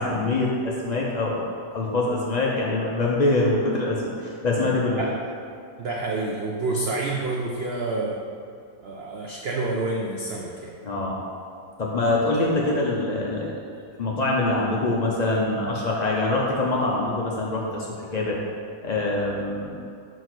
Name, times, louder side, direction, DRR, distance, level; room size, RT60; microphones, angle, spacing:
voice 1, 0.0-1.4 1.7-5.0 10.8-11.2 11.8-13.5 14.0-17.9 18.1-18.4 18.8-19.7, left 2 dB, 90° left, -4 dB, 0.3 m, -24 dB
voice 2, 5.8-8.2 8.8-10.7 12.3-12.5, right 2 dB, 80° right, -1 dB, 0.5 m, -28 dB
4.9 x 4.6 x 6.0 m, 2.4 s
omnidirectional pair, 1.8 m